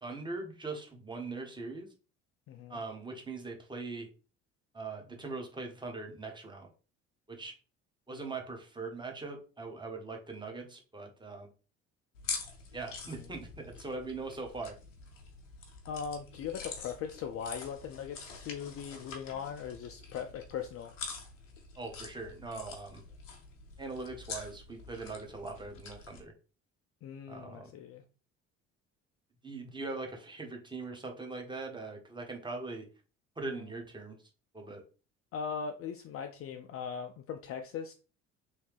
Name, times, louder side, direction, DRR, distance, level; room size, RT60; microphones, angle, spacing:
voice 1, 0.0-1.9 2.7-4.1 4.7-6.7 7.3-7.6 8.1-11.5 12.7-14.8 21.8-23.0 23.8-26.3 27.3-27.7 29.4-32.9 33.4-34.2 34.5-34.8, right 3 dB, 10° right, 1.0 m, -41 dB
voice 2, 2.5-2.8 15.9-20.9 27.0-28.0 33.5-33.6 35.3-37.9, left 7 dB, 40° left, 0.4 m, -39 dB
sound 1, 12.1-26.2, left 5 dB, 80° left, 0.7 m, -45 dB
3.1 x 2.8 x 3.2 m
figure-of-eight pair, 55°, 37 cm